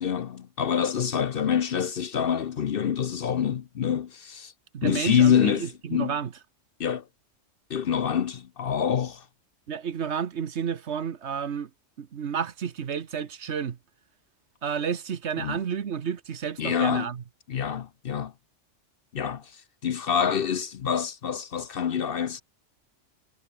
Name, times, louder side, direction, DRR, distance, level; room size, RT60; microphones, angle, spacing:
voice 1, 0.0-4.5 4.8-5.6 5.9-6.2 6.8-7.1 7.7-9.3 15.4-15.6 16.6-17.1 17.5-18.3 19.1-22.4, left 8 dB, 55° left, 0.8 m, -26 dB
voice 2, 4.7-6.3 9.7-11.7 12.0-13.8 14.6-17.2, right 7 dB, 65° right, 1.3 m, -31 dB
omnidirectional pair, 1.3 m